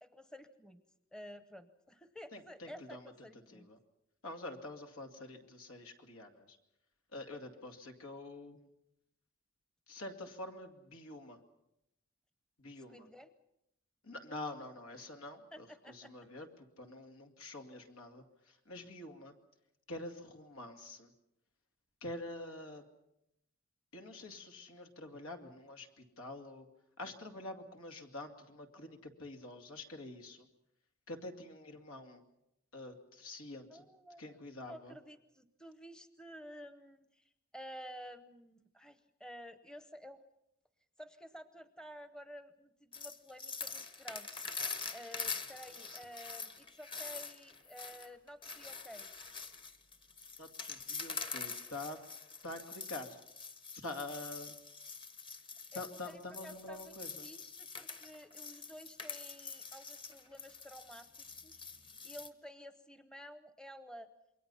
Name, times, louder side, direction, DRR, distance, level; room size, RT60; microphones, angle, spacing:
voice 1, 0.0-0.8 1.1-3.7 12.9-13.3 15.5-16.3 33.7-34.2 34.6-40.2 41.0-44.3 44.6-49.1 55.7-57.0 57.2-61.6 62.0-64.1, equal, 5° left, 10 dB, 0.9 m, -52 dB
voice 2, 2.3-3.8 4.2-6.6 7.1-8.7 9.9-11.4 12.6-13.1 14.0-19.4 19.9-21.1 22.0-22.8 23.9-26.7 27.0-30.5 31.1-32.2 32.7-33.9 34.2-35.0 50.4-52.0 52.4-53.2 53.7-54.6 55.7-57.3, left 2 dB, 80° left, 5 dB, 2.5 m, -47 dB
sound 1, 42.9-62.3, left 5 dB, 25° left, 1.1 m, -45 dB
28.0 x 22.5 x 5.6 m, 0.83 s
head